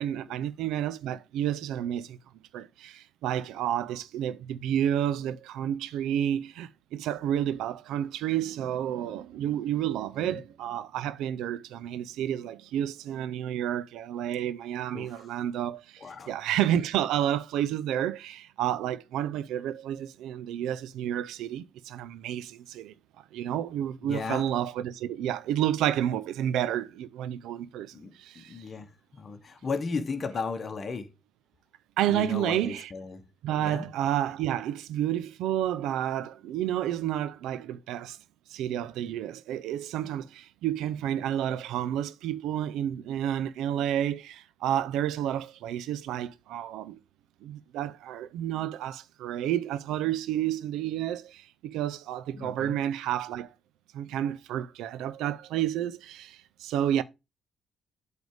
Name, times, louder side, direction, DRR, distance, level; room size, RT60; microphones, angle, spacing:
voice 1, 0.0-2.2 2.5-22.9 23.3-28.6 32.0-32.9 33.4-38.2 38.5-47.0 47.4-53.5 53.9-57.0, right 11 dB, 90° right, 0.5 m, -30 dB
voice 2, 14.9-15.3 16.0-16.3 24.0-24.4 27.9-31.1 32.0-33.2 33.6-33.9 52.4-52.8, left 4 dB, 40° left, 1.3 m, -35 dB
8.2 x 3.5 x 4.8 m
cardioid pair, 90°, 0 cm